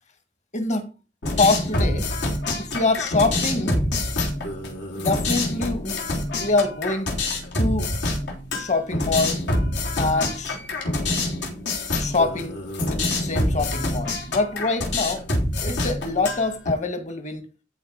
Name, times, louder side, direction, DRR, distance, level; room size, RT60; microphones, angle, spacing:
voice 1, 0.5-0.9 1.4-2.1 2.6-3.8 5.0-6.0 6.4-7.1 7.6-7.9 8.5-9.4 10.0-10.6 12.0-12.5 12.8-15.2 15.6-17.4, left 3 dB, 40° left, 1.9 m, -25 dB
sound 1, 1.2-16.7, left 2 dB, 80° left, 3.5 m, -26 dB
13.5 x 4.8 x 5.0 m
head